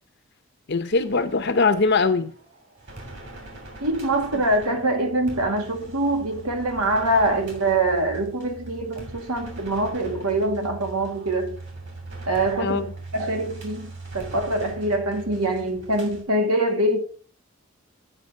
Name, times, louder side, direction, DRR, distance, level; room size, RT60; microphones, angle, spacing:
voice 1, 0.7-2.3 4.3-4.4 12.6-12.9, left 4 dB, 50° left, 0.7 m, -21 dB
sound 1, 0.9-16.2, right 2 dB, 50° right, 2.8 m, -41 dB
voice 2, 3.8-11.6 12.3-12.8 13.1-17.0, right 1 dB, 90° right, 1.7 m, -24 dB
8.1 x 5.4 x 5.3 m
head